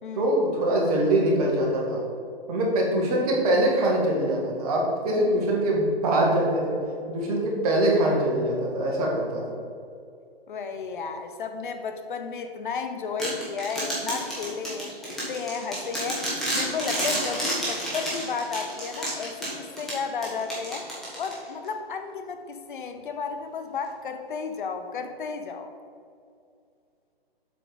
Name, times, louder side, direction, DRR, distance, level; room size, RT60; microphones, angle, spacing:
voice 1, 0.1-2.0 2.5-6.8 7.1-9.4, right 1 dB, 40° right, -1 dB, 1.7 m, -23 dB
voice 2, 10.5-20.8 21.2-25.7, left 5 dB, 55° left, 7 dB, 0.7 m, -33 dB
sound 1, 13.2-21.7, right 1 dB, ahead, 1.6 m, -31 dB
7.7 x 3.8 x 5.1 m, 2.4 s
hypercardioid pair, 140°, 31 cm